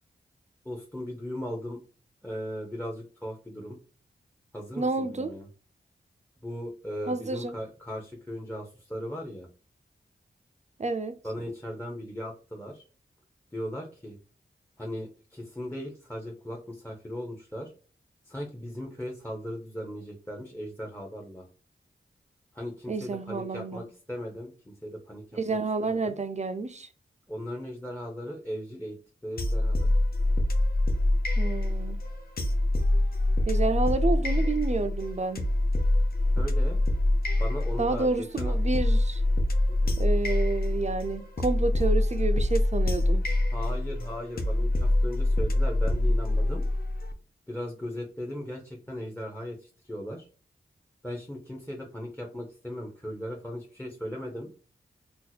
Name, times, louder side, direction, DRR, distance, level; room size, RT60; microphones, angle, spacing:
voice 1, 0.6-1.8 2.2-3.8 4.5-5.5 6.4-9.5 11.2-12.8 13.5-14.2 14.8-17.7 18.3-21.4 22.5-26.2 27.3-29.9 36.4-36.8 37.4-38.5 39.7-40.0 43.5-46.6 47.5-50.3 51.0-54.5, equal, 10° left, 0.7 m, -38 dB
voice 2, 4.8-5.3 7.1-7.5 10.8-11.1 22.9-23.8 25.4-26.9 31.4-32.0 33.5-35.5 37.8-39.2 40.0-43.3, right 3 dB, 35° right, 0.5 m, -29 dB
sound 1, 29.4-47.1, left 1 dB, 50° left, 0.6 m, -25 dB
2.8 x 2.0 x 4.0 m
cardioid pair, 45°, 20 cm